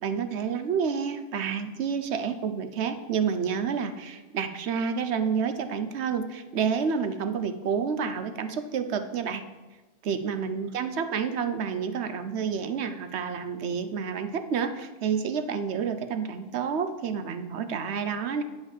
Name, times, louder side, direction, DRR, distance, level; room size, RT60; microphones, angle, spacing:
voice 1, 0.0-9.4 10.0-18.4, right 6 dB, 85° right, 10 dB, 1.0 m, -29 dB
10.0 x 5.4 x 7.2 m, 1.2 s
omnidirectional pair, 1.1 m